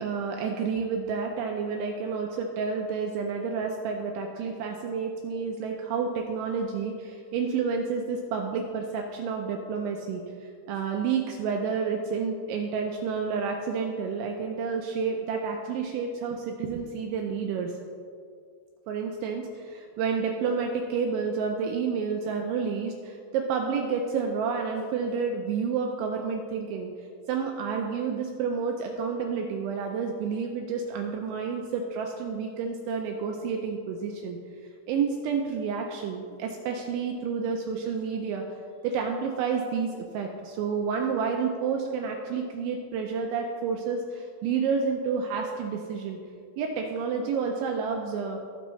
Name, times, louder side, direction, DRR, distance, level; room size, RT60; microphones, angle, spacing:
voice 1, 0.0-17.7 18.9-26.9 27.3-34.4 34.9-46.2 46.6-48.4, right 5 dB, 80° right, 2 dB, 2.8 m, -30 dB
19.5 x 7.0 x 3.2 m, 2.2 s
omnidirectional pair, 5.9 m